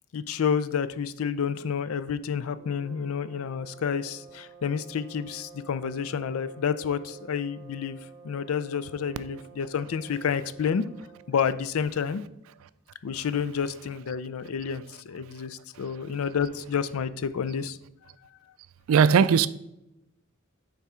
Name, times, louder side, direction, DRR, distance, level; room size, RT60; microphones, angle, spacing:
voice 1, 0.1-8.0 8.2-10.8 11.3-12.2 13.0-17.8, left 7 dB, 90° left, 0.4 m, -29 dB
sound 1, 2.5-11.5, right 6 dB, 30° right, 1.0 m, -50 dB
voice 2, 18.9-19.5, right 6 dB, 75° right, 0.3 m, -18 dB
9.2 x 3.6 x 4.3 m
head